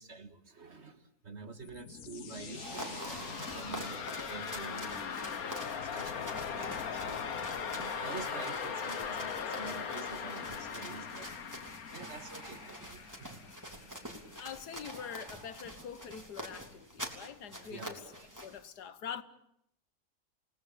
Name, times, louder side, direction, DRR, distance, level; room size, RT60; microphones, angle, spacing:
voice 1, 0.0-7.2 7.7-11.3 11.9-13.4 16.9-17.4 17.7-17.9, right 4 dB, 45° right, 1.9 m, -48 dB
sound 1, 1.4-14.3, left 7 dB, 65° left, 1.7 m, -40 dB
sound 2, 2.3-4.5 7.7-9.3 11.7-13.3 14.6-16.0 18.0-18.3, right 2 dB, 70° right, 4.6 m, -51 dB
sound 3, 2.6-18.6, equal, 10° right, 3.3 m, -47 dB
voice 2, 14.3-18.0 18.4-19.2, left 8 dB, 80° left, 1.8 m, -44 dB
28.5 x 19.0 x 8.6 m
omnidirectional pair, 1.7 m